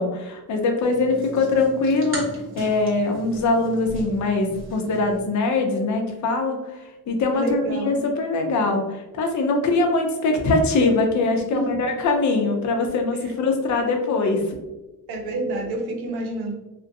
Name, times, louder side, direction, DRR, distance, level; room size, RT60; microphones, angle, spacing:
voice 1, 0.0-2.2 2.6-6.8 7.1-14.5, left 3 dB, 50° left, 3 dB, 0.6 m, -22 dB
sound 1, 0.8-5.2, right 1 dB, 35° right, 1.0 m, -37 dB
voice 2, 7.3-8.0 11.5-12.0 13.2-13.3 15.1-16.5, right 2 dB, 90° right, 2 dB, 0.7 m, -28 dB
2.5 x 2.2 x 2.5 m, 1.0 s
cardioid pair, 90°, 37 cm